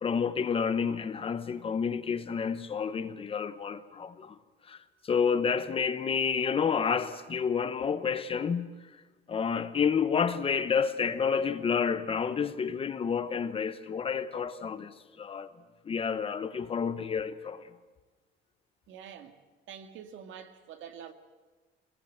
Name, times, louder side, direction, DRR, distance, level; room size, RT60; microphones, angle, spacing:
voice 1, 0.0-4.4 4.7-4.8 5.0-8.7 9.3-15.5 15.8-17.6, left 6 dB, 30° left, 0.9 m, -29 dB
voice 2, 18.9-19.4 19.7-21.1, right 8 dB, 75° right, 2.1 m, -46 dB
24.5 x 21.0 x 7.9 m
cardioid pair, 170°, 20 cm